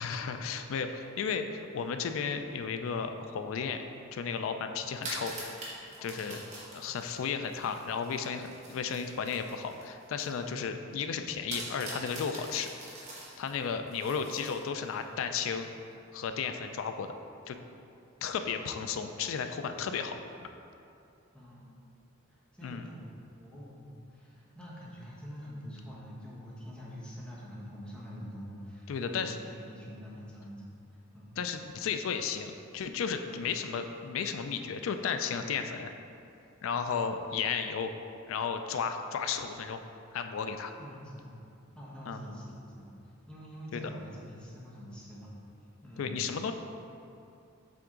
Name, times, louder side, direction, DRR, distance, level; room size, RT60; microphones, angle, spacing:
voice 1, 0.0-3.8 4.1-5.4 6.0-6.4 6.7-12.7 13.4-15.7 16.1-17.1 17.5-17.6 18.2-20.1 20.4-20.5 22.6-22.8 28.9-29.4 31.4-35.9 36.6-37.9 38.3-39.8 40.1-40.7 42.1-42.2 43.7-43.8 46.0-46.5, left 6 dB, 70° left, 7 dB, 0.3 m, -34 dB
voice 2, 0.5-0.9 5.9-6.3 10.2-10.6 21.3-21.8 22.3-31.3 40.8-41.4 41.7-42.5 42.8-42.9 43.3-45.4 45.8-46.3, equal, 5° left, -7 dB, 1.0 m, -46 dB
sound 1, 4.9-10.4 10.7-10.8 11.5-15.0, right 2 dB, 35° right, 1.3 m, -44 dB
7.7 x 3.5 x 3.8 m, 2.6 s
head